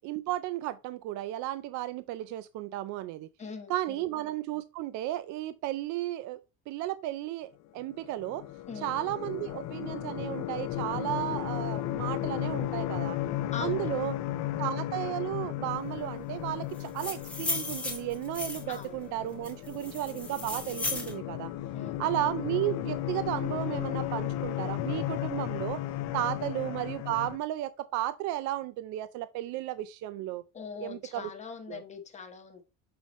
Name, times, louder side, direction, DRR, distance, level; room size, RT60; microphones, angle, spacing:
voice 1, 0.0-3.3 3.7-6.4 6.7-8.4 8.8-13.2 13.6-14.1 14.6-21.5 22.0-25.8 26.1-30.4 30.8-31.3 31.7-31.8, right 14 dB, 65° right, 0.5 m, -34 dB
voice 2, 3.4-4.0 8.7-9.0 13.5-14.2 18.7-19.0 19.7-19.9 21.7-22.0 30.5-32.6, left 6 dB, 20° left, 1.1 m, -42 dB
sound 1, 7.9-27.4, left 13 dB, 55° left, 0.7 m, -35 dB
sound 2, 16.8-18.8 19.4-21.1, left 2 dB, 5° left, 1.5 m, -35 dB
6.9 x 5.6 x 3.1 m
cardioid pair, 155°, 32 cm